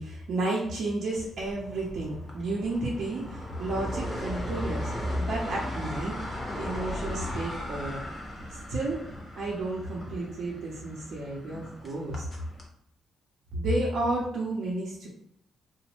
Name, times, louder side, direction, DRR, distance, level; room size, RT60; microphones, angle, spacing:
voice 1, 0.0-8.0 8.7-9.1 9.3-12.2 13.5-15.1, right 2 dB, 65° right, -5 dB, 0.6 m, -32 dB
sound 1, 1.2-12.7, left 1 dB, 15° left, 0.6 m, -37 dB
2.9 x 2.1 x 2.9 m, 0.68 s
cardioid pair, 135°, 0 cm